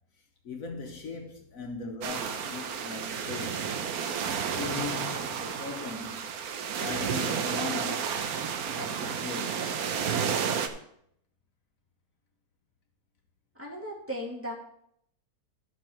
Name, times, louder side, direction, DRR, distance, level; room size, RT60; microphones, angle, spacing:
voice 1, 0.4-3.8 4.5-6.4 6.8-8.3 8.7-9.8, left 4 dB, 65° left, 1.4 m, -39 dB
sound 1, 2.0-10.7, right 7 dB, 75° right, 1.3 m, -31 dB
voice 2, 13.5-14.5, equal, 10° right, 2.4 m, -36 dB
13.0 x 5.7 x 4.4 m
omnidirectional pair, 1.6 m